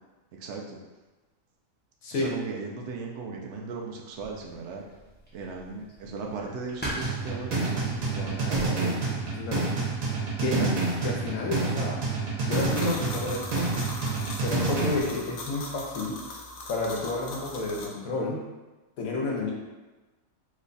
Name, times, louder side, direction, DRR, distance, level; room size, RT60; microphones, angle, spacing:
voice 1, 0.4-0.8 2.1-4.9 5.3-9.3 10.4-10.8, right 4 dB, 65° right, 0 dB, 0.8 m, -36 dB
sound 1, 4.1-9.5, equal, 10° left, 0.7 m, -42 dB
sound 2, 7.0-15.0, right 3 dB, 80° right, 1.3 m, -28 dB
voice 2, 9.4-9.7 10.4-10.7 11.0-12.0 12.5-13.8 14.0-16.2 16.7-18.4 19.0-19.5, left 3 dB, 85° left, -2 dB, 1.2 m, -31 dB
sound 3, 12.5-17.9, left 2 dB, 65° left, 0.9 m, -40 dB
3.1 x 2.3 x 3.9 m, 1.2 s
omnidirectional pair, 1.4 m